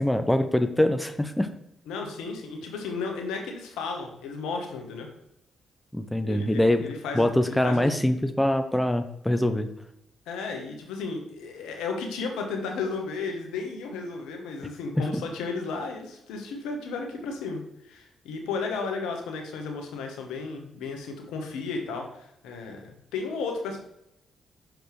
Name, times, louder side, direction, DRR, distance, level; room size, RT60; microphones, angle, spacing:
voice 1, 0.0-1.5 5.9-6.9 7.1-9.7, left 1 dB, 10° left, 8 dB, 0.6 m, -24 dB
voice 2, 1.9-5.1 6.2-7.9 10.3-23.8, left 4 dB, 80° left, 3 dB, 1.0 m, -34 dB
6.1 x 5.1 x 3.1 m, 0.79 s
hypercardioid pair, 45°, 0 cm